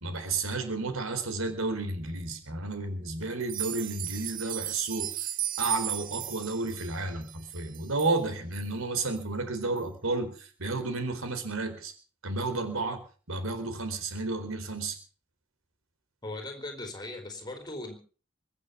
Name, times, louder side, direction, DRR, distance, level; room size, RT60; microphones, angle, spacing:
voice 1, 0.0-5.2 5.6-11.9 12.2-13.0 13.3-15.0, right 3 dB, 70° right, 8 dB, 4.2 m, -32 dB
sound 1, 3.4-8.2 8.6-8.7 9.2-9.3 9.8-9.9, right 12 dB, 40° right, 0.9 m, -35 dB
voice 2, 16.2-17.9, left 2 dB, 20° left, 6 dB, 4.3 m, -38 dB
24.0 x 8.5 x 6.9 m, 0.41 s
head